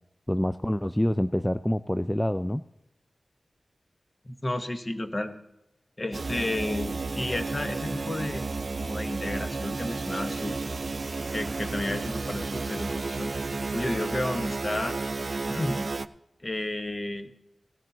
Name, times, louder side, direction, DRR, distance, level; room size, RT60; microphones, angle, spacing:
voice 1, 0.3-2.6, equal, 10° left, 12 dB, 0.3 m, -26 dB
voice 2, 4.2-5.3 6.0-8.4 8.8-10.6 11.3-13.3 13.7-15.0 15.5-15.8 16.4-17.3, left 1 dB, 35° left, 7 dB, 1.2 m, -32 dB
sound 1, 6.1-16.1, right 3 dB, 60° right, 0.4 m, -32 dB
17.0 x 13.0 x 2.8 m, 0.89 s
cardioid pair, 50°, 0 cm